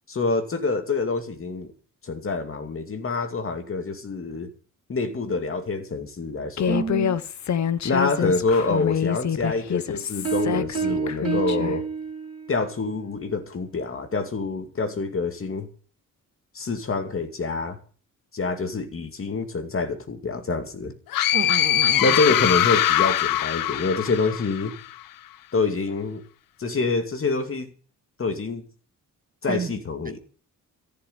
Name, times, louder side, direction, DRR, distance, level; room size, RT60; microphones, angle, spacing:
voice 1, 0.1-1.7 2.0-4.5 4.9-7.1 7.8-11.8 12.5-15.7 16.5-17.8 18.3-20.9 22.0-24.7 25.5-26.2 26.6-27.7 28.2-28.6 29.4-30.2, left 3 dB, 40° left, 2.5 m, -26 dB
Human voice, 6.6-11.8, left 8 dB, 60° left, 1.0 m, -26 dB
voice 2, 6.7-7.2 21.3-22.1 29.5-29.7, right 5 dB, 25° right, 0.6 m, -29 dB
sound 1, 10.2-12.6, right 6 dB, 50° right, 3.5 m, -28 dB
sound 2, 21.1-24.8, left 13 dB, 90° left, 0.7 m, -22 dB
14.5 x 6.7 x 10.0 m
cardioid pair, 115°, 33 cm